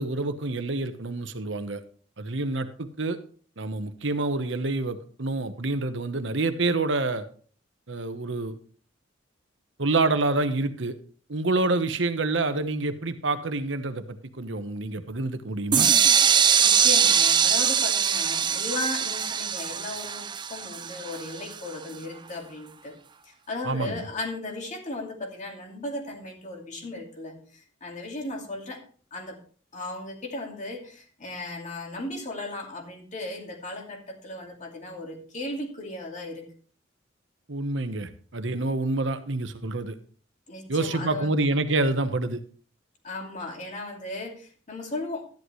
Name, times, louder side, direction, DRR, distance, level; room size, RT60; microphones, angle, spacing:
voice 1, 0.0-1.8 2.2-3.2 3.6-7.2 7.9-8.6 9.8-11.0 11.3-15.9 23.6-24.1 37.5-39.9 40.7-42.4, right 2 dB, 70° right, 10 dB, 1.1 m, -27 dB
sound 1, 15.7-21.5, right 7 dB, 25° right, 0.5 m, -22 dB
voice 2, 16.6-22.9 23.3-28.8 29.1-29.4 29.7-36.5 40.5-41.3 43.0-45.2, left 2 dB, 40° left, 1 dB, 2.5 m, -36 dB
13.0 x 10.5 x 3.2 m, 0.44 s
head